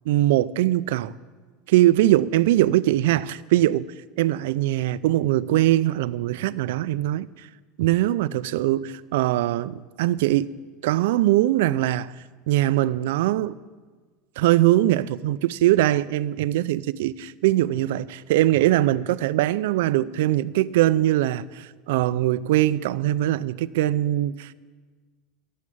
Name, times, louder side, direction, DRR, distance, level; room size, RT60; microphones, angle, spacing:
voice 1, 0.1-1.1 1.7-3.9 4.2-7.3 7.8-10.5 10.8-12.1 12.5-13.5 14.4-24.5, right 14 dB, 80° right, 0.4 m, -21 dB
12.0 x 8.5 x 9.2 m
supercardioid pair, 130°, 0 cm